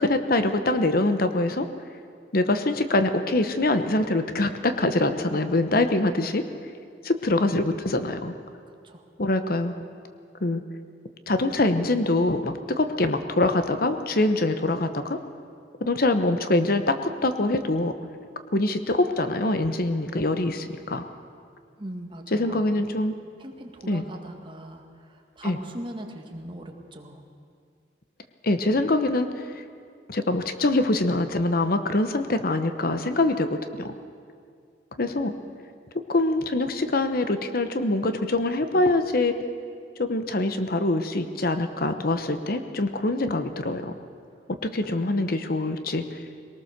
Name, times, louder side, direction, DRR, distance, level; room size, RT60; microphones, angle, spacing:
voice 1, 0.0-1.7 2.3-6.5 7.0-8.3 9.2-9.7 10.4-10.6 11.3-15.2 15.8-17.9 18.5-21.0 22.3-23.1 23.9-24.0 25.4-25.6 28.4-29.5 30.1-33.9 35.0-35.3 36.1-39.3 40.0-43.9 44.6-46.2, left 2 dB, 55° left, 9 dB, 0.9 m, -24 dB
voice 2, 21.8-22.6 23.4-27.2, right 1 dB, 25° right, 2 dB, 1.9 m, -40 dB
22.5 x 18.5 x 6.6 m, 2.3 s
head